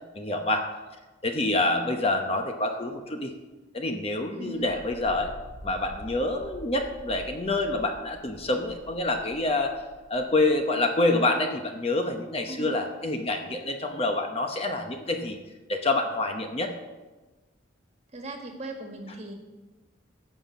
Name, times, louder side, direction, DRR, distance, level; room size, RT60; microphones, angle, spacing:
voice 1, 0.2-0.7 1.2-3.3 3.7-5.3 5.6-9.7 10.1-15.4 15.7-16.7, left 2 dB, 30° left, 4 dB, 0.8 m, -27 dB
voice 2, 4.3-4.7 12.5-12.8 18.1-19.3, right 2 dB, 35° right, 3 dB, 1.6 m, -38 dB
sound 1, 4.5-10.6, equal, 70° left, 1.8 m, -47 dB
15.0 x 5.9 x 7.2 m, 1.2 s
head